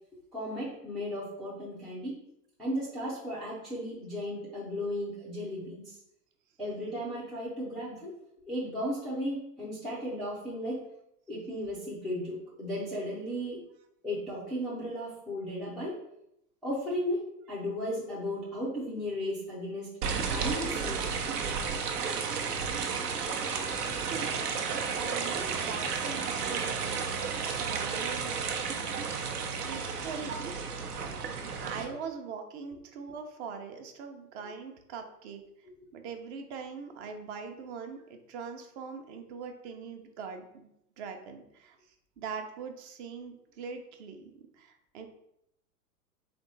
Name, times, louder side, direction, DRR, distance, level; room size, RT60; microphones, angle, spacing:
voice 1, 0.3-2.1 2.6-6.0 6.6-8.1 8.5-10.8 11.3-13.6 14.0-15.9 16.6-17.2 17.5-19.9 20.3-21.0 30.3-30.4, equal, ahead, -9 dB, 0.3 m, -35 dB
sound 1, 20.0-31.8, right 5 dB, 75° right, 0.8 m, -32 dB
voice 2, 24.0-27.0 27.6-28.4 29.6-30.5 31.6-35.4 35.9-40.7 41.0-41.8 42.2-45.1, right 5 dB, 45° right, 5 dB, 0.8 m, -42 dB
3.5 x 3.1 x 4.0 m, 0.79 s
hypercardioid pair, 110°, 47 cm